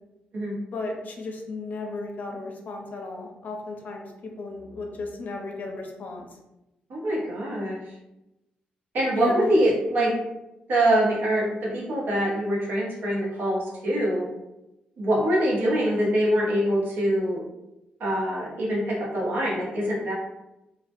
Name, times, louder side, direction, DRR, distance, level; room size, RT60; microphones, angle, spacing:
voice 1, 0.7-6.3 9.2-9.5 10.0-10.2, left 3 dB, 60° left, 1 dB, 0.5 m, -34 dB
voice 2, 6.9-7.9 8.9-10.1 10.7-14.3 15.0-17.4 18.0-20.1, right 1 dB, 80° right, -5 dB, 0.8 m, -24 dB
2.1 x 2.1 x 2.8 m, 0.94 s
cardioid pair, 90°, 3 cm